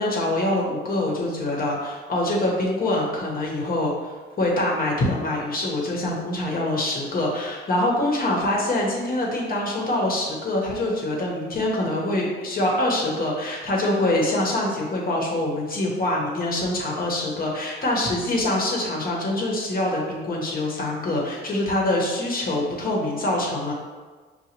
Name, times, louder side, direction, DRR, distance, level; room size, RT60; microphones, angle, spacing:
voice 1, 0.0-23.7, left 1 dB, 45° left, -2 dB, 1.1 m, -25 dB
5.7 x 2.2 x 2.9 m, 1.4 s
cardioid pair, 90°, 20 cm